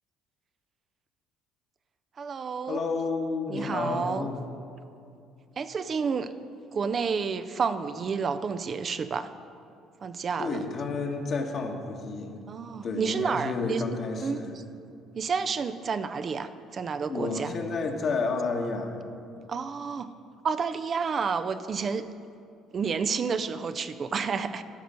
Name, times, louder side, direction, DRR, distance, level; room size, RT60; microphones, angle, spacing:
voice 1, 2.2-2.8 3.5-4.3 5.6-6.3 6.7-9.3 10.0-10.6 12.5-13.8 14.2-14.4 15.1-17.5 19.5-20.1 20.4-22.1 22.7-24.6, right 5 dB, 45° right, 11 dB, 0.4 m, -30 dB
voice 2, 2.7-4.4 10.4-12.5 12.8-14.5 17.1-19.0, left 3 dB, 50° left, 3 dB, 1.3 m, -31 dB
12.0 x 5.0 x 6.8 m, 2.6 s
hypercardioid pair, 60°, 0 cm